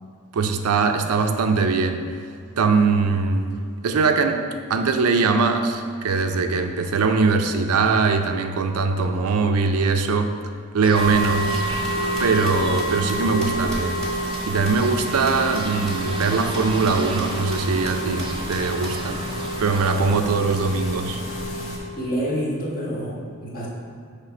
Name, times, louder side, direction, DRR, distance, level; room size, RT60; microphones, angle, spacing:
voice 1, 0.3-2.1 2.6-3.5 3.8-10.3 10.7-11.6 12.2-14.0 14.5-19.2 19.6-21.2, right 4 dB, 85° right, 6 dB, 0.4 m, -21 dB
sound 1, 10.8-20.2, right 3 dB, 20° right, 0.3 m, -36 dB
sound 2, 10.9-21.8, right 1 dB, 65° left, 0.9 m, -28 dB
sound 3, 11.2-15.6 15.9-16.0 16.2-16.3 16.5-16.6 16.9-17.3 17.5-17.6 17.9-18.9, equal, 5° left, 1.2 m, -39 dB
voice 2, 21.9-23.7, equal, 40° left, -5 dB, 1.4 m, -27 dB
5.8 x 3.3 x 5.6 m, 2.3 s
head